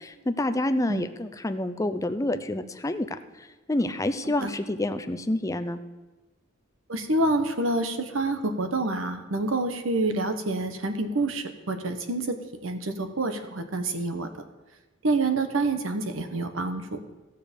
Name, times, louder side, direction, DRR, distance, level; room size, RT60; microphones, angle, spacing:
voice 1, 0.3-3.2 3.7-5.8, left 1 dB, 15° left, 9 dB, 0.5 m, -28 dB
voice 2, 6.9-12.4 12.6-14.3 15.0-17.0, right 2 dB, 85° right, 8 dB, 1.1 m, -27 dB
15.0 x 6.8 x 5.3 m, 1.2 s
head